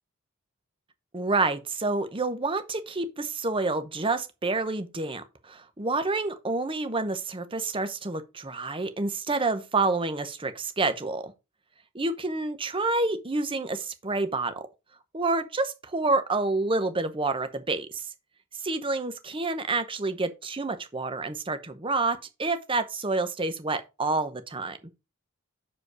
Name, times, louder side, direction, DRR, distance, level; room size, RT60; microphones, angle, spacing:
voice 1, 1.1-11.3 11.9-14.7 15.1-18.1 18.5-24.8, right 3 dB, 25° right, 0.8 m, -28 dB
6.4 x 4.9 x 4.8 m
head